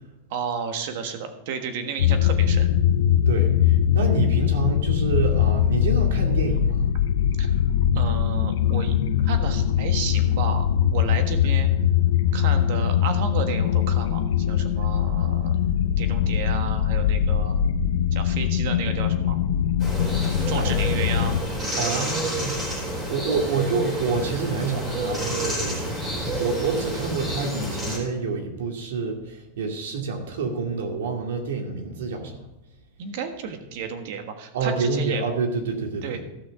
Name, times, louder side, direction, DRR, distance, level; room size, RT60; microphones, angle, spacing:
voice 1, 0.3-2.7 7.4-7.6 7.9-9.0 9.2-10.7 10.9-11.7 12.3-15.5 16.0-17.6 18.1-19.4 20.5-22.2 33.0-35.2 36.0-36.2, right 6 dB, 55° right, 7 dB, 1.4 m, -32 dB
sound 1, 2.0-21.4, left 9 dB, 85° left, 0.7 m, -22 dB
voice 2, 3.3-6.8 20.6-20.7 21.8-22.6 23.0-25.9 26.4-32.4 34.5-36.2, right 4 dB, 85° right, 2 dB, 2.4 m, -28 dB
sound 2, 19.8-28.0, right 1 dB, 20° right, 3.9 m, -29 dB
15.0 x 6.3 x 4.9 m, 0.88 s
supercardioid pair, 165°, 0 cm